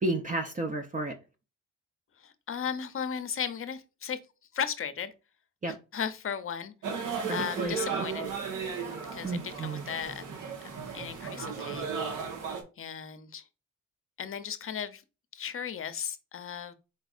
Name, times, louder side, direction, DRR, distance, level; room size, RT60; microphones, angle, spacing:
voice 1, 0.0-1.1 5.6-5.7 7.2-8.1 9.2-9.9, right 2 dB, 25° right, 0.6 m, -32 dB
voice 2, 2.2-4.2 4.5-5.1 5.7-6.7 7.3-8.3 8.9-10.2 10.6-11.9 12.8-13.4 14.2-15.0 15.3-16.7, left 7 dB, 45° left, 0.6 m, -36 dB
sound 1, 6.8-12.6, right 6 dB, 85° right, 1.1 m, -35 dB
4.3 x 4.0 x 2.4 m
cardioid pair, 90°, 31 cm